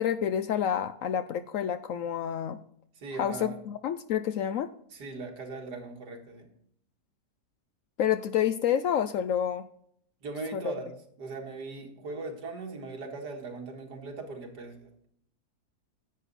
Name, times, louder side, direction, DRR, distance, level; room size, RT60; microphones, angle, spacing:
voice 1, 0.0-2.6 3.2-4.7 8.0-9.7 10.5-10.7, left 9 dB, 70° left, 12 dB, 0.8 m, -28 dB
voice 2, 3.0-3.6 4.9-6.5 10.2-15.1, right 3 dB, 85° right, 3 dB, 2.3 m, -39 dB
10.5 x 8.6 x 4.1 m, 0.67 s
omnidirectional pair, 1.7 m